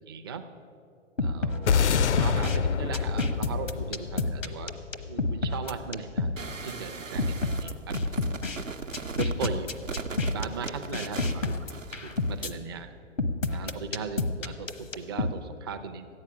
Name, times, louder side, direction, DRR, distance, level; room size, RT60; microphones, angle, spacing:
voice 1, 0.1-0.5 1.2-4.7 5.1-6.3 6.6-8.0 9.1-9.7 10.1-11.6 11.9-12.9 13.5-16.1, right 5 dB, 20° right, 7 dB, 0.4 m, -38 dB
sound 1, 1.2-2.6 2.9-6.4 6.7-6.8 7.2-8.6 8.9-12.5 13.2-15.3, left 2 dB, 85° left, 1.0 m, -29 dB
sound 2, 1.7-6.1, left 6 dB, 65° left, 0.5 m, -27 dB
sound 3, 6.4-12.5, right 4 dB, 90° right, 0.8 m, -38 dB
14.0 x 9.7 x 5.7 m, 2.6 s
figure-of-eight pair, 120°, 38 cm